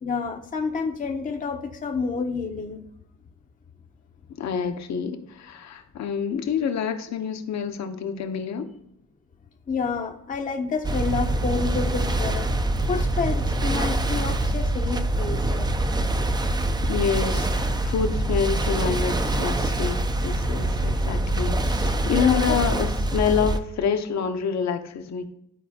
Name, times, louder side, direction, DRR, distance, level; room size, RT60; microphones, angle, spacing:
voice 1, 0.0-2.8 9.7-12.5 12.9-15.7 22.1-22.6, left 5 dB, 25° left, 0.7 m, -29 dB
voice 2, 4.4-8.7 16.9-25.3, left 7 dB, 65° left, 0.9 m, -27 dB
sound 1, 10.8-23.6, right 1 dB, 15° right, 0.5 m, -24 dB
12.0 x 4.2 x 2.8 m
cardioid pair, 90°, 30 cm